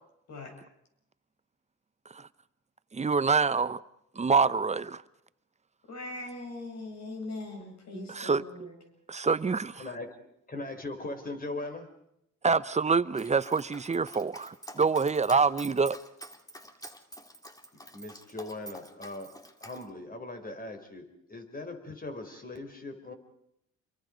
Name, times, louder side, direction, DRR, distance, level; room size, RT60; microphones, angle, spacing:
voice 1, 2.9-3.8 4.1-5.0 7.9-8.7 9.1-9.8 12.4-16.0, right 5 dB, 25° right, 0.8 m, -26 dB
voice 2, 5.9-8.7, left 2 dB, 60° left, 7.7 m, -40 dB
voice 3, 10.5-11.9 17.7-19.3 19.6-23.1, left 2 dB, 30° left, 4.2 m, -40 dB
Dog, 13.1-19.8, right 1 dB, 10° left, 2.1 m, -48 dB
27.0 x 23.5 x 5.2 m
cardioid pair, 90°, 30 cm